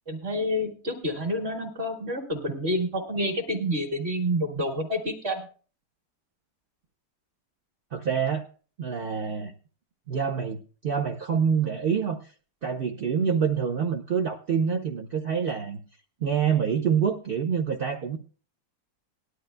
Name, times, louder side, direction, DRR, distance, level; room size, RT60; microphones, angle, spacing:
voice 1, 0.1-5.5, equal, 40° right, 2 dB, 2.1 m, -28 dB
voice 2, 7.9-8.4 8.8-9.5 10.1-12.2 12.6-15.8 16.2-18.2, right 7 dB, 55° right, 2 dB, 0.6 m, -26 dB
18.5 x 11.5 x 2.2 m, 0.39 s
omnidirectional pair, 1.8 m